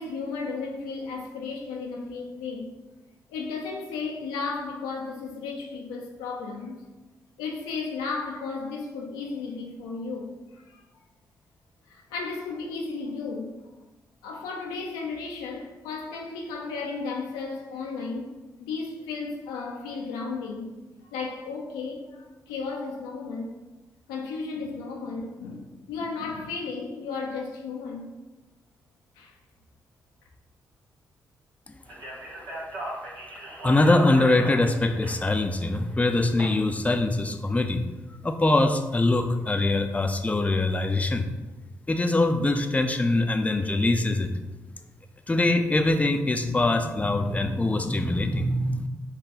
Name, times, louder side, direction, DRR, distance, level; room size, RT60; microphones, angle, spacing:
voice 1, 0.0-2.8 3.3-6.8 7.4-10.8 11.9-13.6 14.2-18.3 18.6-20.7 21.1-23.6 24.1-28.1 29.2-29.3, left 4 dB, 90° left, 0.6 m, -34 dB
Speech, 31.9-36.4, right 1 dB, 80° right, 1.3 m, -38 dB
voice 2, 33.6-37.8 38.2-41.3 41.9-44.3 45.3-48.9, left 2 dB, 20° left, 0.5 m, -23 dB
5.3 x 2.3 x 4.0 m
hypercardioid pair, 45°, 8 cm